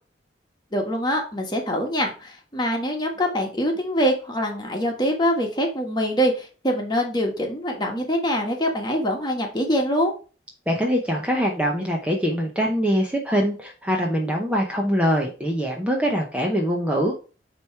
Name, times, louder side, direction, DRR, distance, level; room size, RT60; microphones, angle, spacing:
voice 1, 0.7-10.1, equal, 25° left, 2 dB, 1.4 m, -24 dB
voice 2, 10.7-17.2, equal, 5° right, 0 dB, 0.8 m, -23 dB
8.9 x 3.1 x 4.5 m, 0.36 s
head